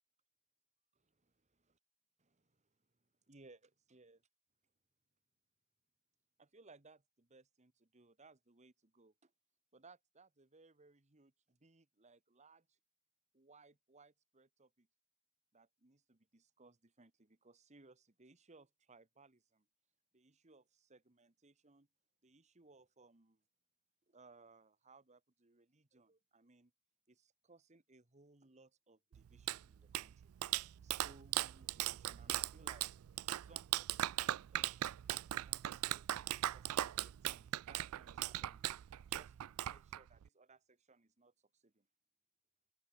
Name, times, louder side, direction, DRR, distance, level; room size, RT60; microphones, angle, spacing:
voice 1, 0.9-1.2 2.2-4.2 6.4-9.3 9.7-12.8 13.3-14.9 15.5-19.7 20.1-21.9 22.2-23.4 24.1-26.7 27.1-30.3 30.8-32.9 33.4-36.1 36.5-41.9, right 3 dB, 30° right, 1.5 m, -65 dB
Clapping, 29.1-40.3, right 14 dB, 80° right, 0.3 m, -39 dB
head